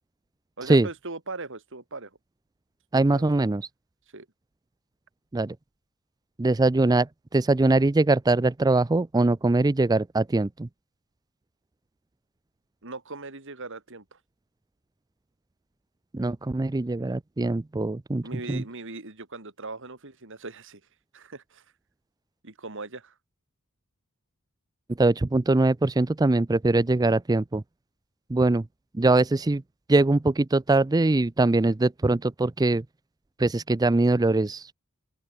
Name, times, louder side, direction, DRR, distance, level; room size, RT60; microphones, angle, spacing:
voice 1, 0.6-2.2 2.9-3.3 4.1-4.3 12.8-14.2 18.2-20.8 21.1-21.6 22.4-23.1, right 3 dB, 60° right, 2.9 m, -39 dB
voice 2, 2.9-3.7 5.3-5.6 6.4-10.7 16.1-18.6 25.0-27.6 28.3-28.7 28.9-29.6 29.9-32.8 33.4-34.7, right 2 dB, 15° right, 0.4 m, -22 dB
open air
head